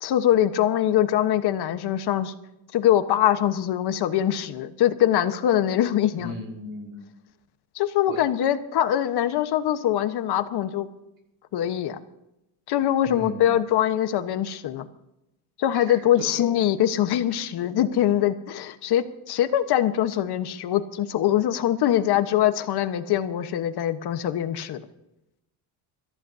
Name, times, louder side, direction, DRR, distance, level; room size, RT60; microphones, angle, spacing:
voice 1, 0.0-2.3 2.7-6.3 7.7-10.9 11.5-12.0 12.7-14.9 15.6-24.8, left 11 dB, 55° left, 10 dB, 1.3 m, -23 dB
voice 2, 6.2-7.2 8.1-8.2 13.1-13.5 15.7-16.4, left 1 dB, 45° right, 3 dB, 5.6 m, -36 dB
26.5 x 14.5 x 2.8 m, 0.88 s
cardioid pair, 150°, 48 cm